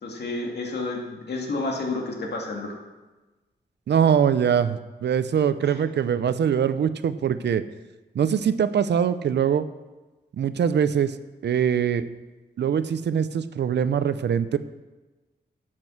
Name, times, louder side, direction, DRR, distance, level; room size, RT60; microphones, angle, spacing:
voice 1, 0.0-2.8 5.6-5.8, left 2 dB, 75° left, 0 dB, 2.3 m, -30 dB
voice 2, 3.9-7.6 8.1-9.7 10.4-11.2 11.4-12.1 12.6-14.6, right 8 dB, 90° right, 13 dB, 0.6 m, -22 dB
12.0 x 7.6 x 6.3 m, 1.2 s
wide cardioid pair, 135°, 17 cm